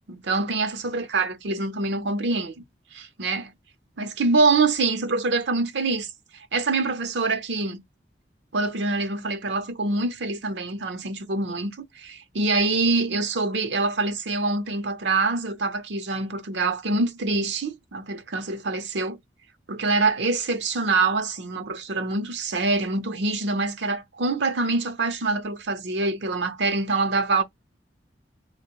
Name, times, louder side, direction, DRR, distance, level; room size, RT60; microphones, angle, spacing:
voice 1, 0.1-2.6 2.9-3.5 4.0-6.1 6.3-7.8 8.5-19.2 19.7-27.4, right 3 dB, 85° right, 0.7 m, -25 dB
3.5 x 2.2 x 3.0 m
head